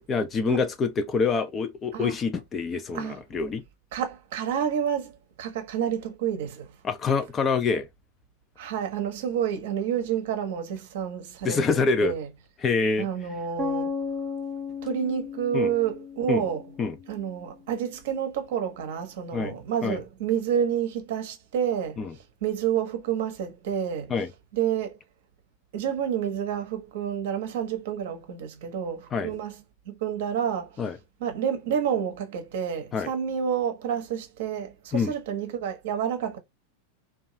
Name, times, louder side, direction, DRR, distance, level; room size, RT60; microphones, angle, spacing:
voice 1, 0.0-3.6 6.8-7.9 11.4-12.1 12.6-13.1 15.5-15.7 16.3-16.4 16.8-17.0 19.3-19.6 19.8-20.0 22.0-22.1 24.1-24.3 29.1-29.4 30.8-31.0 32.9-33.1 34.9-35.1, left 4 dB, 25° left, 0.4 m, -26 dB
voice 2, 3.9-6.7 8.6-12.3 13.0-13.9 14.8-16.6 17.1-24.1 24.5-25.0 25.7-29.6 29.9-30.8 31.2-36.4, right 8 dB, 55° right, 0.7 m, -29 dB
sound 1, 13.6-17.5, left 5 dB, 10° right, 0.9 m, -35 dB
2.6 x 2.3 x 2.5 m
figure-of-eight pair, 90°, 0 cm